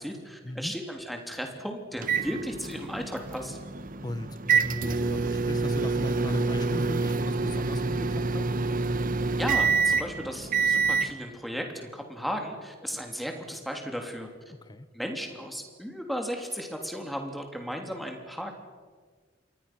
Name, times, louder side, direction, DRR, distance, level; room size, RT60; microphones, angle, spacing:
voice 1, 0.0-3.6 9.4-14.3 14.9-18.5, equal, ahead, 3 dB, 3.2 m, -35 dB
sound 1, 2.0-11.1, right 4 dB, 45° right, 1.1 m, -27 dB
voice 2, 4.0-8.5 14.6-14.9, left 1 dB, 20° left, 13 dB, 0.9 m, -38 dB
27.5 x 23.0 x 6.1 m, 1.5 s
head